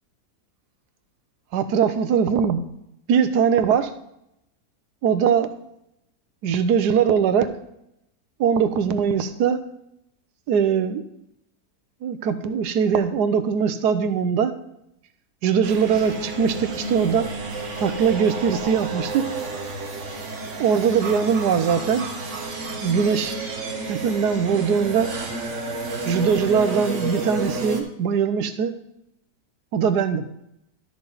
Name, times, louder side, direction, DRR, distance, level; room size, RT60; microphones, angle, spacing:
voice 1, 1.5-2.6 3.1-3.9 5.0-5.5 6.4-7.5 8.4-9.6 10.5-11.0 12.0-14.5 15.4-17.2 17.8-19.3 20.6-22.1 22.8-23.4 23.9-25.1 26.0-28.7 29.7-30.2, right 7 dB, 85° right, 11 dB, 1.3 m, -21 dB
sound 1, 15.6-27.8, right 2 dB, 50° right, 1.5 m, -31 dB
12.5 x 6.7 x 4.0 m, 0.81 s
omnidirectional pair, 1.7 m